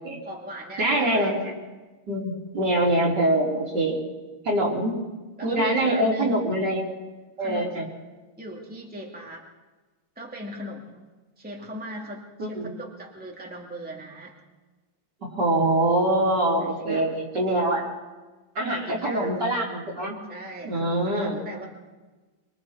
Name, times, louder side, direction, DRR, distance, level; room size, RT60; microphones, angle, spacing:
voice 1, 0.2-1.4 5.4-6.4 7.4-7.9 8.4-9.4 10.2-14.4 16.7-17.1 18.7-19.4 20.3-21.7, equal, 5° right, -1 dB, 2.3 m, -39 dB
voice 2, 0.8-1.5 2.1-4.1 4.4-4.9 5.4-6.9 7.4-7.9 12.4-12.7 15.2-17.9 18.6-20.2 20.6-21.4, right 1 dB, 55° right, -2 dB, 4.3 m, -24 dB
26.0 x 24.5 x 4.3 m, 1.2 s
omnidirectional pair, 2.3 m